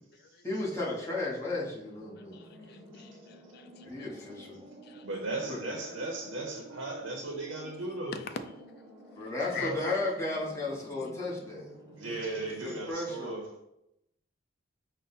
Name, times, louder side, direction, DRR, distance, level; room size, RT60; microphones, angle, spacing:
voice 1, 0.4-2.4 3.8-4.6 5.5-5.8 9.2-11.7 12.0-12.3 12.6-13.5, left 2 dB, 15° left, -5 dB, 1.0 m, -34 dB
sound 1, 2.0-12.9, right 1 dB, 25° right, 0.6 m, -51 dB
voice 2, 2.3-4.1 4.8-5.1 8.1-8.3 9.5-9.9, left 6 dB, 55° left, 9 dB, 0.4 m, -43 dB
voice 3, 5.0-8.2 9.6-9.8 12.0-13.5, right 2 dB, 75° right, 2 dB, 0.6 m, -36 dB
5.2 x 2.1 x 4.0 m, 0.83 s
head